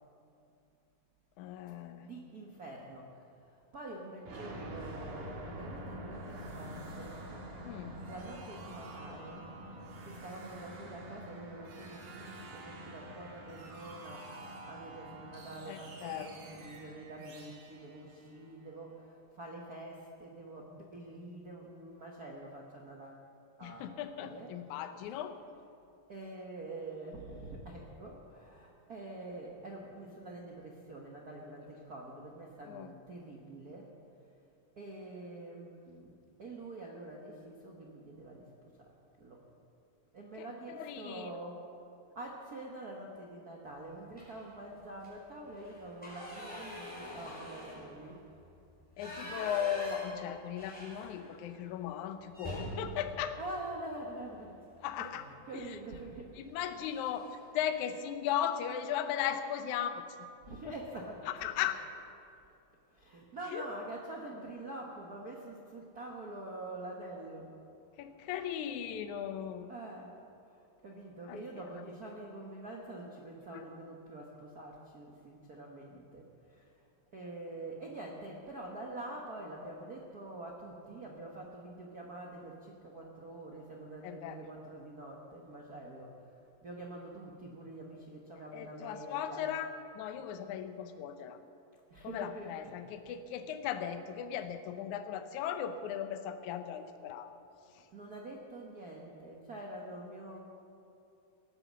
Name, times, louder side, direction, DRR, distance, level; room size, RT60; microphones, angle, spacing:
voice 1, 1.4-2.1 7.6-8.0 15.7-16.3 23.6-25.3 32.7-33.0 40.4-41.3 49.0-53.4 54.8-55.3 55.5-55.8 56.4-60.3 60.7-60.8 61.3-61.8 63.5-63.6 68.0-69.7 71.3-71.4 73.5-73.7 84.0-84.4 88.5-91.4 92.0-97.4 97.7-97.9, left 9 dB, 70° left, 8 dB, 2.0 m, -37 dB
voice 2, 2.0-7.5 7.8-23.2 23.6-23.9 24.2-24.5 25.1-25.2 26.1-33.9 34.8-36.1 36.4-38.9 39.2-39.4 40.1-41.7 42.1-48.3 49.3-49.5 53.4-56.4 60.4-61.5 62.9-67.5 69.7-70.1 70.4-76.9 77.1-86.3 86.6-89.4 91.9-92.7 97.9-100.4, right 2 dB, 85° right, -2 dB, 0.8 m, -46 dB
sound 1, 4.3-18.9, right 1 dB, 65° right, 3.4 m, -47 dB
sound 2, 44.1-44.6 44.9-45.1 45.5-51.5 51.8-51.9 52.3-54.5 55.8-56.1 56.4-56.6 56.9-57.5, equal, ahead, 4.6 m, -45 dB
18.0 x 9.7 x 7.5 m, 2.6 s
omnidirectional pair, 4.0 m